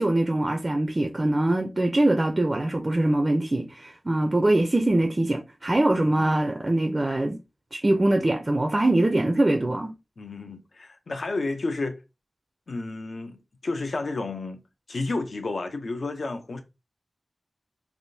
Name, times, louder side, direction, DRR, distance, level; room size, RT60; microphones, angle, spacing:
voice 1, 0.0-7.4 7.7-9.9, right 1 dB, 30° right, 0.4 m, -23 dB
voice 2, 10.2-12.0 12.7-14.6 14.9-16.6, left 3 dB, 65° left, 0.6 m, -31 dB
3.4 x 2.5 x 2.7 m
wide cardioid pair, 75°, 0 cm